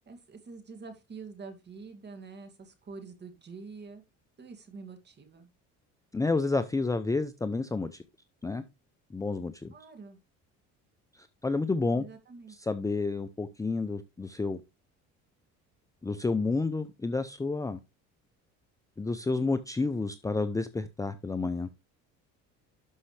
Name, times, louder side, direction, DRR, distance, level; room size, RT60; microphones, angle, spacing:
voice 1, 0.1-4.0 4.4-5.5 9.7-10.2 11.9-12.6, right 4 dB, 35° right, 7 dB, 2.4 m, -46 dB
voice 2, 6.1-8.0 8.4-8.6 9.1-9.7 11.1-12.0 12.5-14.6 16.0-17.8 19.0-21.7, left 3 dB, 10° left, 10 dB, 0.6 m, -30 dB
12.0 x 5.5 x 3.3 m, 0.25 s
cardioid pair, 110°, 31 cm